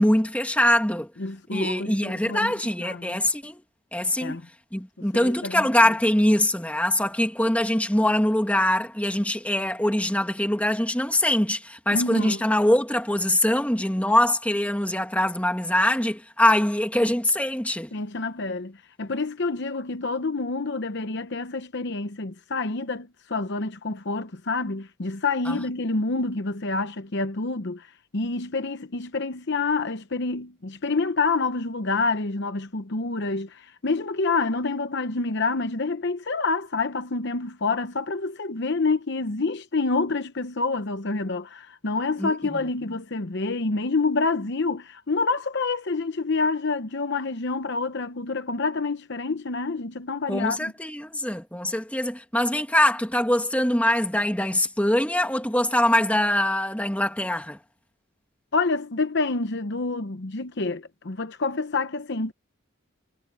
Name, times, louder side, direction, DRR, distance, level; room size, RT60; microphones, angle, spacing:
voice 1, 0.0-1.1 1.5-3.6 3.9-4.4 4.7-17.9 25.5-25.6 42.2-42.7 50.3-57.6, left 1 dB, 5° left, 2.3 m, -23 dB
voice 2, 1.2-2.5 2.8-3.2 4.2-4.4 5.0-5.6 11.9-12.4 17.9-50.7 58.5-62.3, left 3 dB, 55° left, 0.9 m, -27 dB
head